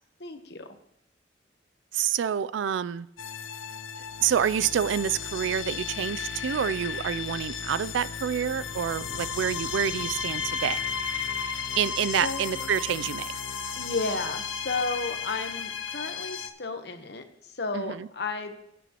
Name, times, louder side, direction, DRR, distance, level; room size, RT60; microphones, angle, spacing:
voice 1, 0.2-0.7 12.2-12.7 13.8-18.6, left 3 dB, 60° left, 7 dB, 1.0 m, -33 dB
voice 2, 1.9-3.1 4.2-10.8 11.8-13.3 17.7-18.1, right 8 dB, 80° right, 17 dB, 0.3 m, -28 dB
sound 1, 3.2-16.5, left 6 dB, 90° left, 0.7 m, -34 dB
17.0 x 6.9 x 2.9 m, 0.78 s
head